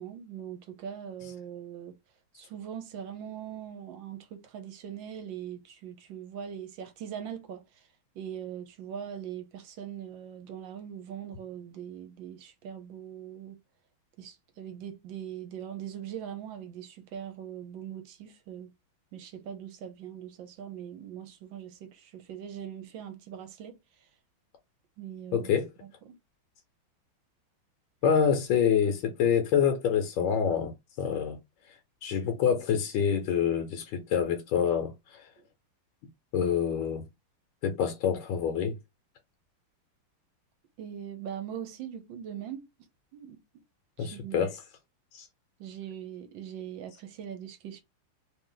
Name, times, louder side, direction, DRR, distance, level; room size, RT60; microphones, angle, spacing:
voice 1, 0.0-2.0 2.3-7.9 8.1-13.6 14.2-18.7 19.1-23.7 25.0-25.5 26.0-26.1 35.4-35.5 40.8-42.7 43.1-43.4 44.0-44.5 45.6-47.8, right 9 dB, 70° right, 1.3 m, -41 dB
voice 2, 25.3-25.7 28.0-30.7 31.0-31.4 32.0-35.2 36.3-37.0 37.6-38.7 44.0-44.6 45.1-45.3, left 7 dB, 75° left, 1.4 m, -26 dB
3.3 x 2.8 x 3.7 m
omnidirectional pair, 2.3 m